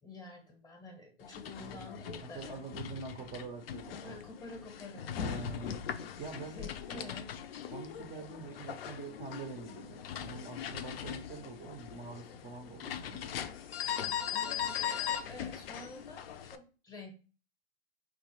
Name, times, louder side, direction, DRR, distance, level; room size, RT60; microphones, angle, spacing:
voice 1, 0.0-2.6 4.0-5.1 6.5-7.3 14.3-17.1, left 2 dB, 10° left, 3 dB, 0.7 m, -49 dB
sound 1, 1.2-16.6, left 9 dB, 65° left, 0.4 m, -40 dB
voice 2, 1.6-4.2 5.2-5.8 6.2-7.1 7.7-13.3, right 4 dB, 20° right, 1 dB, 0.4 m, -45 dB
4.5 x 2.0 x 2.9 m, 0.35 s
hypercardioid pair, 115°, 33 cm